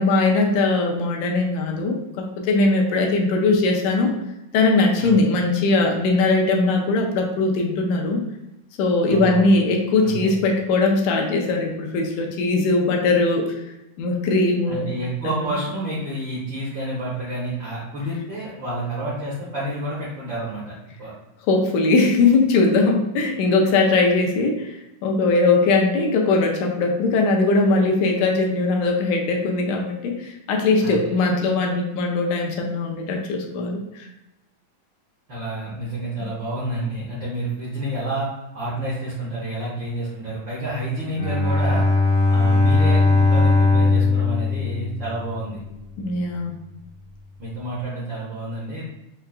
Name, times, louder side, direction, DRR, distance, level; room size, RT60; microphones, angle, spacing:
voice 1, 0.0-4.1 4.5-8.2 8.8-13.5 14.0-14.9 15.2-15.5 21.5-24.7 25.0-33.8 46.0-46.6, left 3 dB, 80° left, 1 dB, 1.9 m, -20 dB
voice 2, 9.1-9.5 10.0-10.3 14.7-20.7 21.0-21.1 30.8-31.1 35.3-38.3 38.5-41.8 42.3-45.6 47.4-48.8, right 1 dB, 80° right, -8 dB, 1.0 m, -29 dB
Bowed string instrument, 41.1-45.5, left 3 dB, 65° left, 2.2 m, -19 dB
5.5 x 2.4 x 2.3 m, 0.93 s
omnidirectional pair, 3.5 m